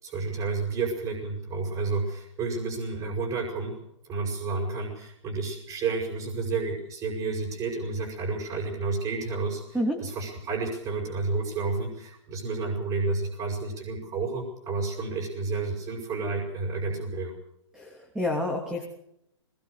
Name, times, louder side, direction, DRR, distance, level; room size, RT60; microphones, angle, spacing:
voice 1, 0.0-3.8 4.1-17.4, right 3 dB, 25° right, 0 dB, 6.3 m, -31 dB
voice 2, 17.7-18.8, left 1 dB, 5° right, 2 dB, 3.1 m, -29 dB
21.0 x 20.5 x 6.6 m, 0.78 s
hypercardioid pair, 130°, 16 cm